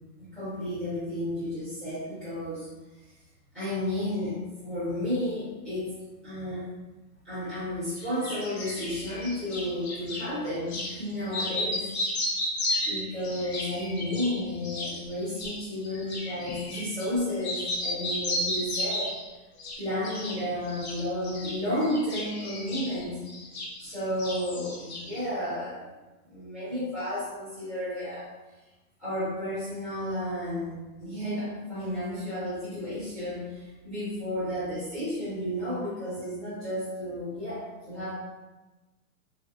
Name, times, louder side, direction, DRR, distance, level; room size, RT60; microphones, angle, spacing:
voice 1, 0.2-2.7 3.5-5.9 6.2-6.7 7.2-11.9 12.8-19.2 19.8-23.2 23.8-25.9 26.2-28.3 29.0-38.1, left 1 dB, ahead, -14 dB, 0.6 m, -32 dB
sound 1, 8.0-10.3 10.7-10.9 11.3-17.1 17.4-19.2 19.6-20.4 20.7-23.9 24.2-25.2, left 1 dB, 45° left, 0.7 m, -33 dB
3.7 x 2.4 x 2.6 m, 1.1 s
hypercardioid pair, 175°, 44 cm